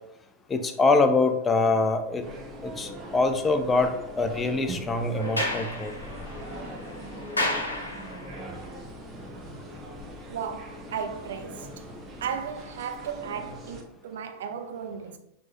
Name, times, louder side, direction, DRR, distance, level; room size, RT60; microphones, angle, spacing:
voice 1, 0.5-2.2 2.6-5.9, left 3 dB, 15° left, 0.4 m, -24 dB
sound 1, 2.2-13.8, equal, 20° right, 0.9 m, -41 dB
Sliding door, 5.2-8.4, left 1 dB, 80° left, 0.9 m, -32 dB
voice 2, 10.3-11.9 12.2-15.2, right 7 dB, 60° right, 0.5 m, -35 dB
6.1 x 2.9 x 2.5 m
figure-of-eight pair, 90°, 0 cm